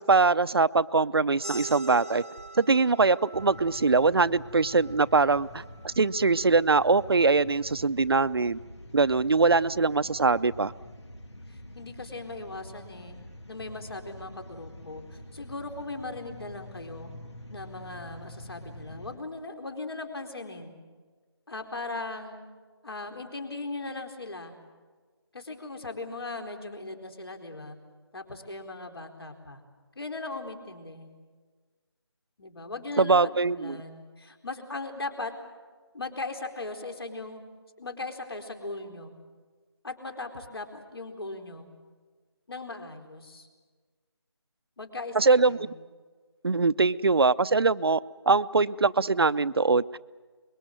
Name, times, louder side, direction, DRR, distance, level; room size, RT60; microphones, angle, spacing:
voice 1, 0.0-2.2 2.6-8.6 8.9-10.7 33.0-33.8 45.1-45.6 46.4-48.0 48.3-49.8, right 4 dB, 60° right, 15 dB, 0.6 m, -22 dB
sound 1, 1.4-6.6, right 2 dB, 30° right, 0.9 m, -44 dB
sound 2, 3.3-19.2, left 1 dB, 85° left, 2.6 m, -46 dB
voice 2, 11.5-13.2 13.5-17.1 17.5-20.8 21.5-22.4 22.8-24.5 25.3-27.8 28.1-29.6 30.0-31.1 32.4-35.3 35.9-37.4 37.8-39.1 39.8-41.7 42.5-43.5 44.8-45.8, left 2 dB, 60° left, 5 dB, 4.2 m, -38 dB
24.5 x 22.0 x 7.7 m, 1.4 s
figure-of-eight pair, 165°, 14 cm